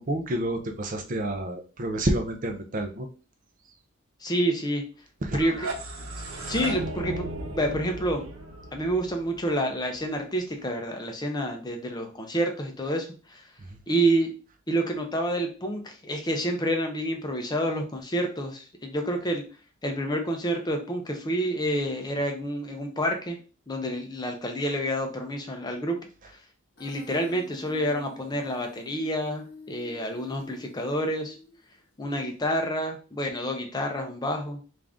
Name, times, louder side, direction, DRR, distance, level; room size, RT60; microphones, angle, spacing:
voice 1, 0.0-3.1 5.2-5.4 13.6-13.8, right 1 dB, 35° right, 5 dB, 0.5 m, -29 dB
voice 2, 4.2-4.8 5.3-5.7 6.5-8.3 8.7-13.5 13.9-14.3 14.7-19.4 19.8-23.4 23.7-26.0 26.8-31.3 32.0-34.6, right 1 dB, 20° left, 4 dB, 0.5 m, -28 dB
sound 1, 5.2-10.1, right 1 dB, 70° right, 0.9 m, -36 dB
Human voice, 26.8-31.7, left 3 dB, 45° left, 1.0 m, -49 dB
3.5 x 2.5 x 3.5 m, 0.36 s
head